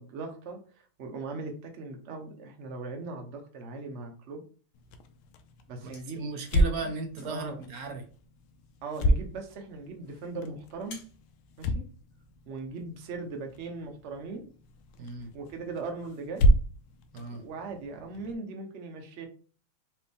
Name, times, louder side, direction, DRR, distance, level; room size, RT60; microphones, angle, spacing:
voice 1, 0.0-4.4 5.7-6.3 6.8-6.9 7.2-7.6 8.8-11.0 11.6-11.8 12.5-14.5 15.3-16.6 17.3-19.3, right 3 dB, 80° right, 3 dB, 0.6 m, -39 dB
sound 1, 4.7-18.3, equal, 80° left, 1.4 m, -32 dB
sound 2, 5.6-12.4, left 3 dB, 60° left, 1.6 m, -57 dB
voice 2, 5.8-8.0 15.0-15.3 17.1-17.4, right 3 dB, 60° right, 5 dB, 1.0 m, -36 dB
4.4 x 3.0 x 3.5 m, 0.40 s
omnidirectional pair, 2.3 m